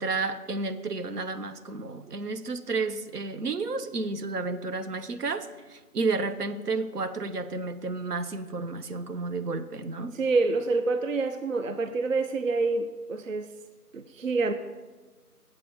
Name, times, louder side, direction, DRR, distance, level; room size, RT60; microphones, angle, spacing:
voice 1, 0.0-10.2, right 3 dB, 80° right, 0.8 m, -31 dB
voice 2, 10.1-13.5 13.9-14.5, right 3 dB, 60° right, 0.5 m, -27 dB
7.7 x 6.6 x 5.9 m
figure-of-eight pair, 170°, 46 cm